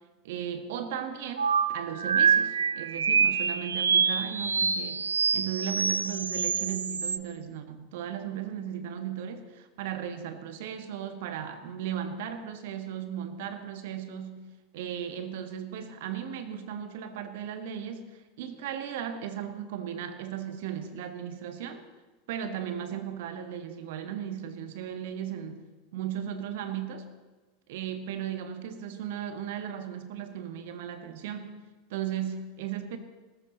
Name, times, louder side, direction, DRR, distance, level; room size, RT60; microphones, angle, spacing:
voice 1, 0.2-14.5 14.7-21.9 22.3-27.1 27.7-31.6 31.9-33.0, right 9 dB, 60° right, 8 dB, 1.5 m, -36 dB
sound 1, 1.4-7.2, right 6 dB, 80° right, 0.6 m, -26 dB
19.5 x 13.5 x 4.1 m, 1.3 s
figure-of-eight pair, 85°, 0 cm